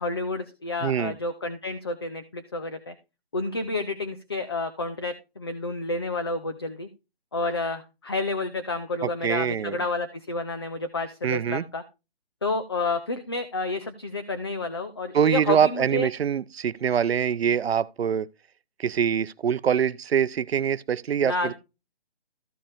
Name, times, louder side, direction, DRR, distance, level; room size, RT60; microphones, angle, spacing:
voice 1, 0.0-2.9 3.3-6.9 7.3-11.8 12.4-16.1 21.2-21.5, left 2 dB, 25° left, 0.5 m, -30 dB
voice 2, 0.8-1.1 9.0-9.8 11.2-11.6 15.1-18.3 18.8-21.5, right 8 dB, 75° right, 0.6 m, -24 dB
14.0 x 5.2 x 3.5 m
hypercardioid pair, 170°, 31 cm